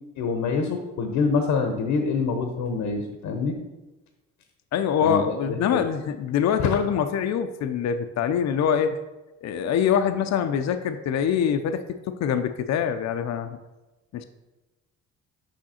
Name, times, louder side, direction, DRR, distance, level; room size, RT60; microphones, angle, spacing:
voice 1, 0.2-3.6 5.0-5.2 5.5-5.8 6.6-6.7, left 4 dB, 80° left, 5 dB, 0.9 m, -25 dB
voice 2, 4.7-9.0 9.4-13.6 14.1-14.2, left 8 dB, 65° left, 8 dB, 0.6 m, -24 dB
6.3 x 5.7 x 4.3 m, 1.1 s
cardioid pair, 90°, 30 cm